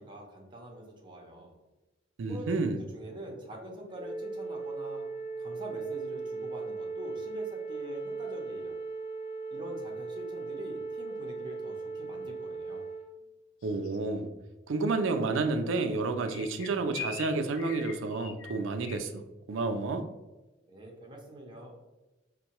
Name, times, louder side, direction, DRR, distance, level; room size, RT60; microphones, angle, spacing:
voice 1, 0.0-1.5 2.3-2.5 2.9-5.1 5.4-8.8 9.5-12.8 20.7-21.7, right 1 dB, 25° right, 0 dB, 0.7 m, -44 dB
voice 2, 2.2-2.8 13.6-14.3 14.7-20.1, right 3 dB, 75° right, 8 dB, 0.4 m, -30 dB
Wind instrument woodwind instrument, 3.9-13.1, right 3 dB, 60° left, 0.9 m, -38 dB
sound 1, 13.6-14.0 16.2-19.0, left 6 dB, 85° left, 0.4 m, -42 dB
5.3 x 2.2 x 2.9 m, 1.1 s
head